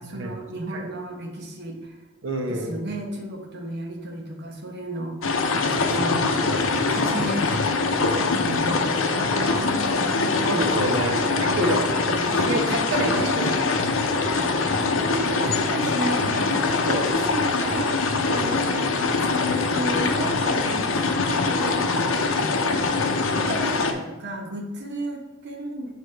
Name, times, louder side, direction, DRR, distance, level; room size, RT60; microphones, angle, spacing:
voice 1, 0.0-2.0 2.5-5.5 5.8-6.2 6.9-10.5 14.3-14.5 15.1-21.9 22.4-22.9 23.3-25.9, right 1 dB, 55° right, 1 dB, 1.0 m, -33 dB
voice 2, 2.2-2.8 5.7-6.0 6.4-6.6 10.4-13.7 16.9-17.0 18.2-18.5, right 1 dB, 75° right, 1 dB, 1.1 m, -28 dB
sound 1, 5.2-23.9, left 3 dB, 80° left, 0.7 m, -23 dB
6.8 x 4.9 x 3.3 m, 1.1 s
head